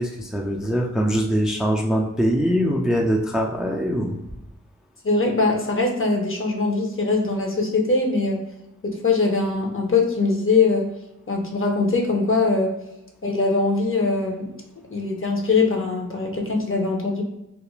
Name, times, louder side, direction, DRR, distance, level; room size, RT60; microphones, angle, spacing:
voice 1, 0.0-4.2, equal, ahead, 0 dB, 0.3 m, -22 dB
voice 2, 5.0-8.4 8.8-10.9 11.3-12.8 13.2-14.5 14.9-17.2, left 3 dB, 40° left, 1 dB, 0.6 m, -22 dB
2.4 x 2.1 x 3.0 m, 0.88 s
wide cardioid pair, 50°, 32 cm